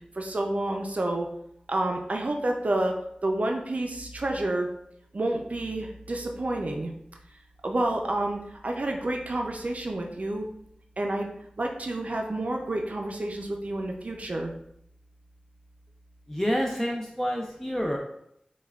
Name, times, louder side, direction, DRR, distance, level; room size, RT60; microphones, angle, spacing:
voice 1, 0.1-1.3 1.7-3.0 3.2-4.7 5.1-6.9 7.6-10.5 11.0-11.3 11.6-14.5, right 1 dB, 55° right, 2 dB, 0.4 m, -29 dB
voice 2, 16.3-18.0, equal, 15° left, 0 dB, 0.4 m, -28 dB
5.3 x 2.2 x 2.3 m, 0.74 s
wide cardioid pair, 55°, 3 cm